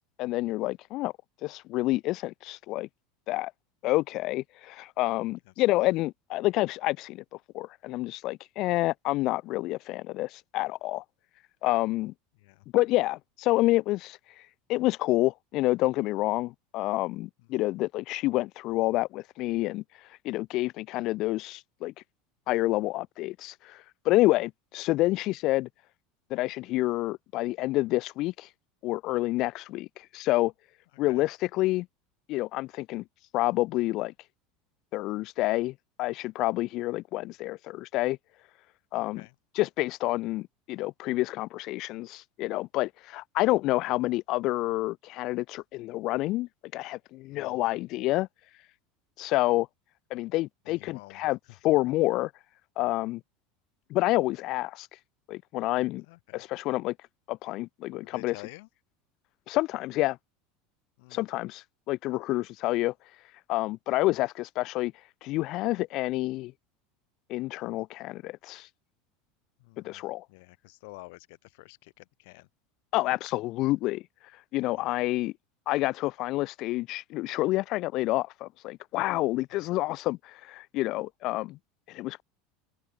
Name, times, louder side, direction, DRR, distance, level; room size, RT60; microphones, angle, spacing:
voice 1, 0.2-1.1 1.4-2.9 3.3-3.5 3.8-7.2 7.5-11.0 11.6-12.1 12.7-14.2 14.7-19.8 20.2-21.9 22.5-25.7 26.3-28.5 28.8-30.5 31.0-31.9 32.3-33.0 33.3-34.1 34.9-38.2 38.9-39.2 39.5-48.3 49.2-49.7 50.1-51.4 51.6-52.3 52.8-53.2 53.9-54.9 55.3-56.0 56.3-56.9 57.3-58.3 59.5-60.2 61.1-62.9 63.5-64.9 65.2-66.5 67.3-68.7 69.8-70.2 72.9-74.0 74.5-75.3 75.7-81.6 81.9-82.2, left 18 dB, 45° left, 1.5 m, -28 dB
voice 2, 39.0-39.3 47.3-47.7 50.6-51.2 56.1-56.4 58.0-58.7 61.0-61.2 69.6-70.0 70.3-72.5 74.8-75.0 79.5-79.7, left 26 dB, 70° left, 6.6 m, -50 dB
open air
supercardioid pair, 145°, 0 cm